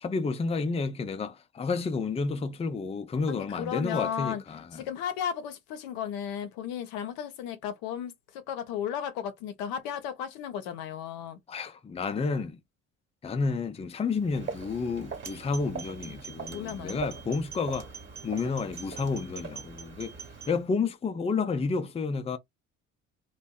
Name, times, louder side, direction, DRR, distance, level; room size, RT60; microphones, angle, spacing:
voice 1, 0.0-4.9 11.5-12.6 13.2-17.9 18.2-20.1 20.5-22.4, left 4 dB, 15° left, 0.5 m, -30 dB
voice 2, 3.3-4.4 4.7-11.4 16.5-17.0, left 9 dB, 80° left, 0.7 m, -34 dB
Walk footsteps, 14.1-20.7, right 5 dB, 30° right, 1.1 m, -43 dB
sound 1, 15.2-20.5, right 6 dB, 50° right, 0.9 m, -45 dB
2.6 x 2.2 x 2.2 m
hypercardioid pair, 60°, 36 cm